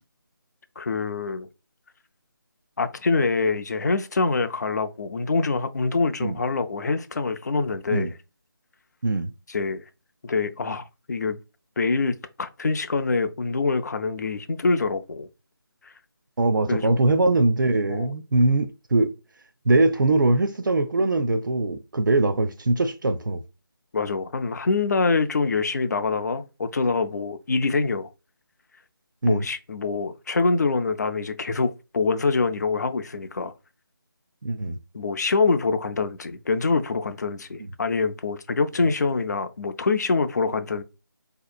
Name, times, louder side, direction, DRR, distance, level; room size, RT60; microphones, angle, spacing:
voice 1, 0.8-1.5 2.8-8.1 9.5-9.8 10.2-11.4 11.8-15.3 16.7-17.0 17.9-18.1 23.9-28.1 29.2-33.5 34.9-40.8, left 4 dB, 50° left, 0.4 m, -25 dB
voice 2, 16.4-19.1 19.7-23.4 29.2-29.4 34.4-34.8 37.6-37.7, right 2 dB, 60° right, 0.5 m, -22 dB
4.2 x 2.8 x 2.3 m
figure-of-eight pair, 160°, 12 cm